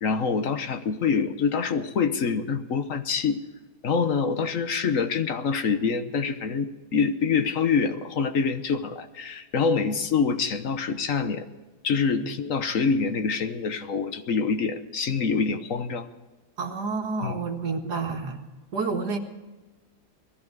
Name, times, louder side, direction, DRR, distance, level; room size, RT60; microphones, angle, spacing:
voice 1, 0.0-3.4 3.8-11.5 11.8-16.1 17.2-17.4, left 5 dB, 60° left, 9 dB, 1.3 m, -25 dB
voice 2, 16.6-18.4 18.7-19.2, right 4 dB, 90° right, 4 dB, 2.2 m, -29 dB
19.5 x 14.0 x 4.7 m, 1.2 s
omnidirectional pair, 1.7 m